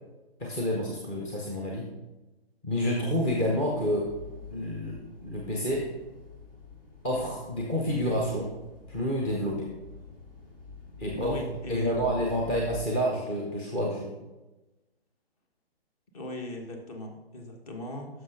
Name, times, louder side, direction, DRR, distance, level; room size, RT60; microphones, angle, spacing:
voice 1, 0.4-1.9 2.6-4.1 4.5-5.8 7.0-8.5 8.9-9.7 11.0-11.3 11.7-14.1, equal, 10° left, -3 dB, 0.5 m, -29 dB
sound 1, 3.3-12.8, left 5 dB, 60° left, 2.9 m, -46 dB
voice 2, 11.0-12.1 16.1-18.2, left 1 dB, 35° left, 2 dB, 1.3 m, -39 dB
10.5 x 6.5 x 2.6 m, 1.1 s
figure-of-eight pair, 135°, 32 cm